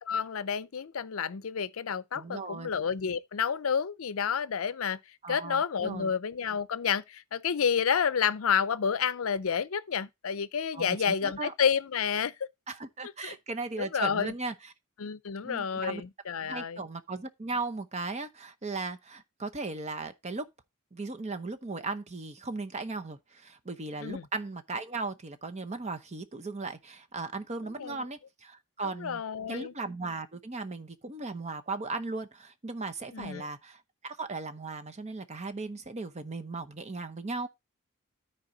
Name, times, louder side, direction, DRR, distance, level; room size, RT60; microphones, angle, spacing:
voice 1, 0.0-5.0 5.3-12.3 13.2-13.3 13.8-14.3 15.0-16.8 24.0-24.2 27.8-28.0 29.0-29.7 33.1-33.4, left 7 dB, 65° left, 0.5 m, -30 dB
voice 2, 2.1-2.7 5.2-6.1 10.7-11.5 12.7-14.7 15.4-16.0 16.5-20.5 20.9-29.2 29.5-37.5, right 3 dB, 30° right, 0.8 m, -37 dB
12.5 x 4.6 x 3.9 m
head